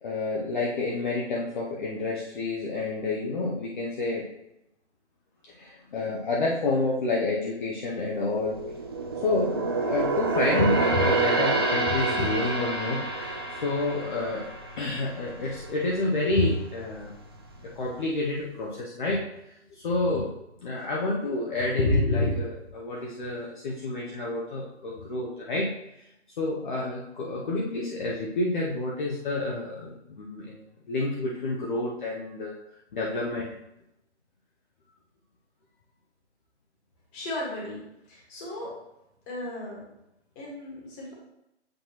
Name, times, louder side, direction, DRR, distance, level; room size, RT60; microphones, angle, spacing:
voice 1, 0.0-4.2 5.6-8.6 9.2-14.5 14.8-17.1 17.6-19.3 19.8-20.3 20.6-25.7 26.4-32.5 32.9-33.5, left 2 dB, 45° left, -3 dB, 1.0 m, -28 dB
sound 1, 8.2-15.7 16.1-16.3 16.8-17.6 17.9-18.0, right 3 dB, 20° right, 0.4 m, -28 dB
voice 2, 37.1-37.8 38.1-38.7 39.3-39.8 40.3-41.1, left 1 dB, 20° left, -3 dB, 1.7 m, -36 dB
7.8 x 4.4 x 3.0 m, 0.85 s
figure-of-eight pair, 145°, 35 cm